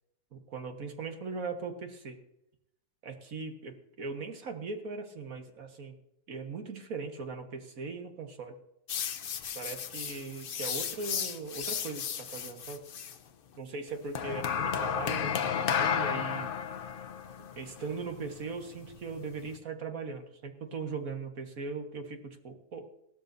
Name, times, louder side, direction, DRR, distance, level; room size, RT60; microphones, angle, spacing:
voice 1, 0.3-2.2 3.0-6.0 6.3-8.6 9.6-12.8 13.6-16.6 17.4-22.9, right 4 dB, 55° right, 4 dB, 1.9 m, -39 dB
sound 1, 8.9-13.2 14.1-19.5, left 8 dB, 80° left, 0.4 m, -33 dB
18.0 x 12.5 x 2.7 m, 0.84 s
omnidirectional pair, 1.8 m